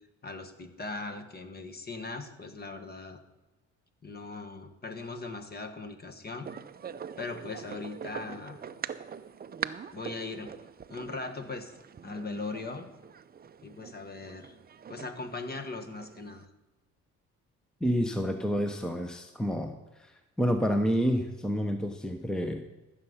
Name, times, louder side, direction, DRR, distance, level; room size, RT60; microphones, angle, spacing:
voice 1, 0.2-3.2 4.0-6.5 7.2-8.6 9.9-10.5 10.9-11.7 12.0-12.9 13.6-14.6 14.9-16.5, left 3 dB, 30° left, 7 dB, 1.4 m, -39 dB
sound 1, 6.4-16.4, right 7 dB, 30° right, 0.5 m, -43 dB
voice 2, 17.8-20.1 20.4-22.6, equal, ahead, 6 dB, 0.8 m, -29 dB
14.5 x 6.8 x 5.6 m, 1.1 s
cardioid pair, 90°, 30 cm